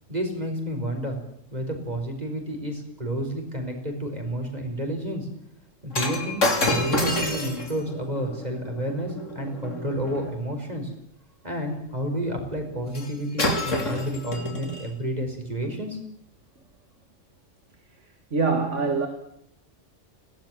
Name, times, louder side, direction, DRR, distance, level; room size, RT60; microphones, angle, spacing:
voice 1, 0.1-1.2 1.5-5.3 5.8-6.4 6.7-10.9 11.4-16.0, equal, 30° right, 3 dB, 5.1 m, -30 dB
Shatter, 5.9-10.3 12.9-13.1 13.4-14.9 15.6-15.8, left 1 dB, 75° left, 3.4 m, -28 dB
voice 2, 18.3-19.1, right 4 dB, 70° right, 6 dB, 2.6 m, -23 dB
22.0 x 17.5 x 7.6 m, 0.74 s
omnidirectional pair, 1.3 m